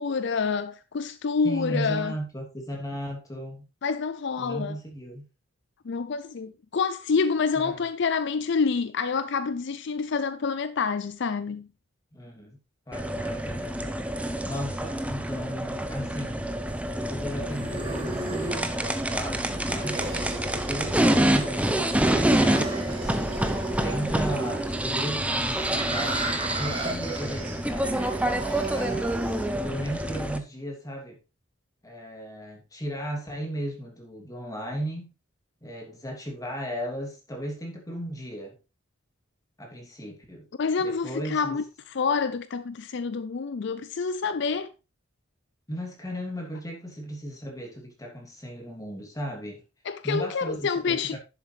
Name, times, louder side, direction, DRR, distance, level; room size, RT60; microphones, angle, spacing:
voice 1, 0.0-2.2 3.8-4.8 5.8-11.7 40.6-41.6 41.9-44.7 49.9-51.2, left 5 dB, 65° left, 0.5 m, -27 dB
voice 2, 1.4-3.7 4.4-5.2 7.5-7.8 12.1-12.6 12.9-13.8 14.4-16.5 16.9-20.0 20.5-23.3 23.8-28.0 28.7-29.1 29.6-31.2 31.8-35.1 35.6-38.6 39.6-40.5 40.8-41.6 45.7-49.6 50.0-51.2, equal, 20° left, 2.8 m, -36 dB
sound 1, 12.9-30.4, right 1 dB, 5° right, 0.8 m, -27 dB
sound 2, 16.7-29.7, right 2 dB, 30° right, 3.1 m, -35 dB
11.0 x 7.3 x 3.3 m
head